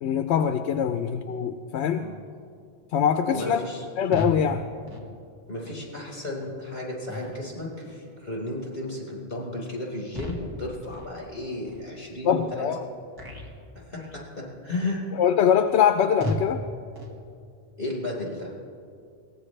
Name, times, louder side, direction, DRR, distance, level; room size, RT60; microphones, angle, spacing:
voice 1, 0.0-2.1 2.9-3.6 4.0-4.7 12.2-12.8 15.2-16.6, left 8 dB, 80° left, 8 dB, 0.9 m, -23 dB
voice 2, 3.3-3.8 5.5-12.6 13.9-15.0 17.8-18.5, left 2 dB, 50° left, -3 dB, 4.6 m, -34 dB
sound 1, 4.1-4.4 4.8-5.1 5.6-5.8 6.4-6.5 7.1-7.5 7.8-8.1 8.6-8.9 9.3-9.6 10.1-10.6 10.9-11.2 11.6-11.8 12.4-12.6 13.1-13.5 13.9-14.2 14.7-14.9 15.4-15.6 16.2-16.5 16.9-17.2, equal, 20° right, 1.7 m, -35 dB
22.0 x 18.0 x 3.3 m, 2.3 s
omnidirectional pair, 1.1 m